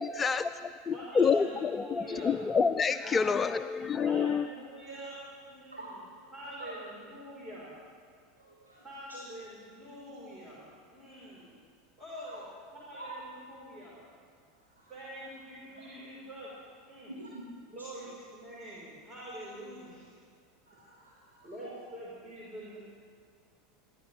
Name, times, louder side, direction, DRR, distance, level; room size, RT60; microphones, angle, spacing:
voice 1, 0.0-0.5 0.9-4.5, left 5 dB, 20° left, 12 dB, 0.3 m, -28 dB
voice 2, 0.9-2.4 3.9-5.2 5.5-6.0 6.3-7.7 8.8-11.6 12.0-12.5 12.7-14.0 14.9-16.5 16.9-17.1 17.7-20.1 21.4-22.8, right 1 dB, 20° right, -7 dB, 3.8 m, -45 dB
voice 3, 5.7-6.3 6.6-6.7 8.4-8.8 9.1-9.3 12.2-12.4 12.9-13.1 14.7-14.9 15.8-15.9 17.1-17.5 17.8-17.9 20.7-21.7, right 2 dB, 85° right, -6 dB, 1.8 m, -47 dB
21.0 x 12.5 x 3.2 m, 2.1 s
figure-of-eight pair, 80°, 0 cm